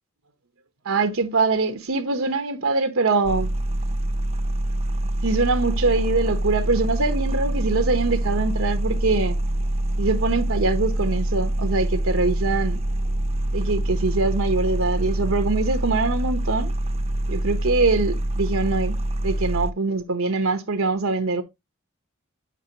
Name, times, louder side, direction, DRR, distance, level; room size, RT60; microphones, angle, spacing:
voice 1, 0.8-3.5 5.2-9.4 10.0-12.8 13.5-16.7 17.3-21.4, right 3 dB, 80° right, 1.0 m, -23 dB
sound 1, 3.2-19.7, right 1 dB, 30° right, 0.7 m, -25 dB
8.2 x 5.4 x 2.9 m
head